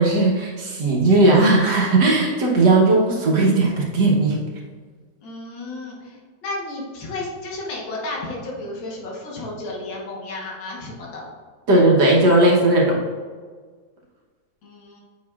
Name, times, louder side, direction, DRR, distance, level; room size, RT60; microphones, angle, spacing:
voice 1, 0.0-4.4 11.7-13.0, right 2 dB, 65° right, -3 dB, 1.6 m, -17 dB
voice 2, 5.2-11.2 14.6-15.0, left 2 dB, 85° left, -3 dB, 1.9 m, -33 dB
8.5 x 5.5 x 2.4 m, 1.5 s
omnidirectional pair, 2.1 m